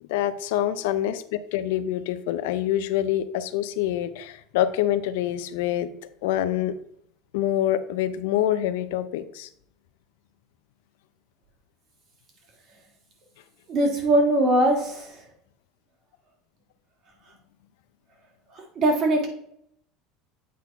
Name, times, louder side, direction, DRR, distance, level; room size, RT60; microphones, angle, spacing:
voice 1, 0.0-5.9 6.2-6.8 7.3-9.5, left 12 dB, 90° left, 13 dB, 0.5 m, -26 dB
voice 2, 13.7-15.2 18.5-19.3, right 1 dB, 40° right, 2 dB, 2.0 m, -21 dB
8.3 x 4.2 x 4.2 m, 0.71 s
cardioid pair, 145°, 0 cm